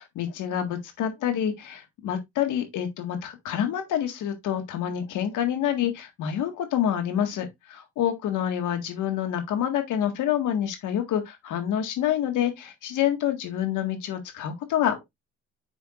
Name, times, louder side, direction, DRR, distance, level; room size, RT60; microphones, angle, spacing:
voice 1, 0.0-15.0, left 10 dB, 85° left, 1.7 m, -27 dB
7.0 x 5.8 x 2.4 m
cardioid pair, 90°, 30 cm